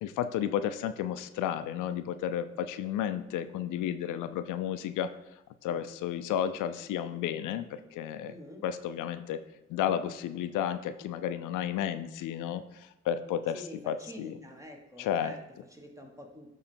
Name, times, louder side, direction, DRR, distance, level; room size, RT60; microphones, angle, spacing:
voice 1, 0.0-5.1 5.6-8.3 8.6-9.4 9.7-12.6 13.1-13.6 13.9-14.3 15.0-15.3, left 10 dB, 90° left, 11 dB, 0.5 m, -32 dB
voice 2, 8.3-8.6 13.5-16.5, equal, 10° right, 2 dB, 1.3 m, -47 dB
8.9 x 3.3 x 4.4 m, 0.89 s
cardioid pair, 90°, 30 cm